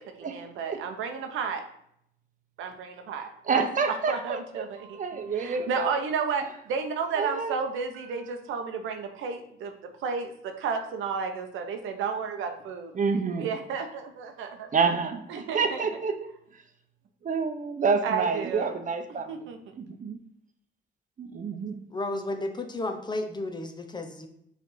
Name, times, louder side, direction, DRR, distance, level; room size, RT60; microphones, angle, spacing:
voice 1, 0.0-1.6 2.6-9.7 10.0-12.9 13.4-14.7 15.3-15.9 18.0-18.8 19.3-19.6, right 5 dB, 85° right, 5 dB, 0.9 m, -32 dB
voice 2, 3.5-4.7 4.9-5.9 7.2-7.6 12.9-13.5 14.7-16.3 17.2-19.3 19.8-20.2 21.2-21.8, right 5 dB, 40° right, 7 dB, 0.8 m, -28 dB
voice 3, 21.9-24.3, left 2 dB, 20° left, 5 dB, 0.8 m, -33 dB
4.9 x 3.4 x 5.5 m, 0.72 s
cardioid pair, 90°, 20 cm